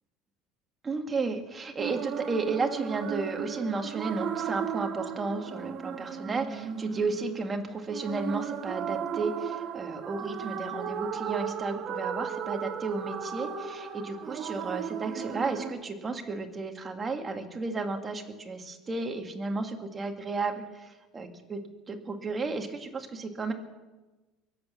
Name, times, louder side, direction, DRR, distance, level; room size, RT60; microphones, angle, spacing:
voice 1, 0.8-21.6 21.9-23.5, right 3 dB, 20° right, 4 dB, 2.0 m, -33 dB
sound 1, 1.8-15.7, right 8 dB, 45° right, 1.6 m, -35 dB
23.5 x 8.2 x 7.0 m, 1.2 s
cardioid pair, 135°, 0 cm